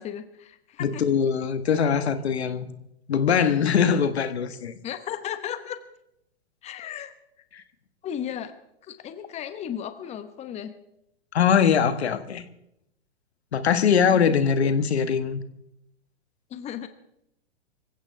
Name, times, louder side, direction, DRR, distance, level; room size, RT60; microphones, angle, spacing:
voice 1, 0.0-1.0 4.8-5.8 6.6-7.1 8.0-8.5 8.8-10.7 14.0-14.3 16.5-16.9, left 9 dB, 20° left, 10 dB, 1.1 m, -35 dB
voice 2, 0.8-2.7 3.1-4.7 7.5-7.6 11.3-12.4 13.5-15.4, left 7 dB, 75° left, 10 dB, 1.6 m, -22 dB
25.0 x 16.0 x 3.5 m, 0.81 s
hypercardioid pair, 125°, 33 cm